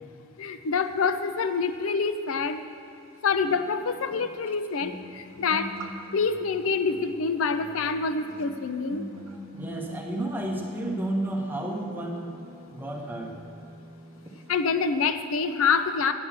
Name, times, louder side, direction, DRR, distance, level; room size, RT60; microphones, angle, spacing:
voice 1, 0.4-2.6 3.2-5.7 6.1-9.1 14.5-16.1, left 5 dB, 80° left, 10 dB, 0.5 m, -26 dB
sound 1, 2.0-2.1 3.4-14.5 14.8-15.1, equal, 80° right, 0.8 m, -43 dB
voice 2, 9.5-12.4 12.7-13.4, right 1 dB, 10° right, -1 dB, 1.0 m, -31 dB
8.4 x 7.9 x 7.3 m, 2.6 s
head